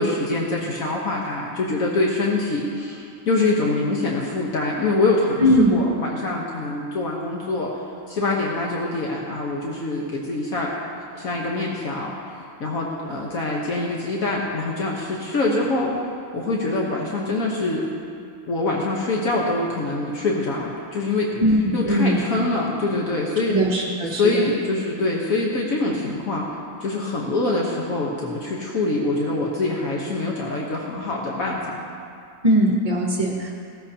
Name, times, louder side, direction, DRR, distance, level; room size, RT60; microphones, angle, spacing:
voice 1, 0.0-7.7 8.1-10.7 11.1-12.3 12.6-15.9 16.3-17.9 18.5-21.4 21.7-23.6 24.1-26.5 26.8-31.7, left 2 dB, 80° left, -3 dB, 1.6 m, -24 dB
voice 2, 5.4-5.8 21.4-22.4 23.5-24.5 32.4-33.5, equal, 30° right, -1 dB, 0.9 m, -20 dB
16.5 x 13.5 x 2.9 m, 2.4 s
omnidirectional pair, 1.4 m